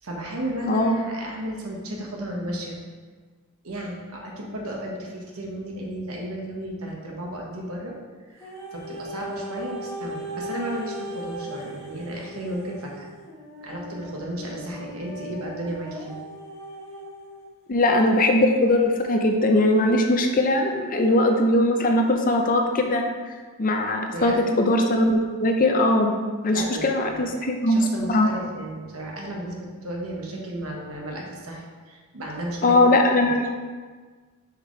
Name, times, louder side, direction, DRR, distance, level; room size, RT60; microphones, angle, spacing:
voice 1, 0.0-2.8 3.6-7.9 8.3-13.1 13.6-16.2 24.1-24.4 26.5-32.8 33.2-33.3, right 1 dB, 70° right, -1 dB, 1.3 m, -34 dB
voice 2, 0.7-1.0 17.7-23.0 23.6-26.1 26.4-28.3 32.6-33.5, left 1 dB, 40° left, 3 dB, 0.5 m, -20 dB
female vocal long, 8.4-17.5 18.2-18.3, equal, 10° left, 1.3 m, -38 dB
6.8 x 5.1 x 3.2 m, 1.5 s
head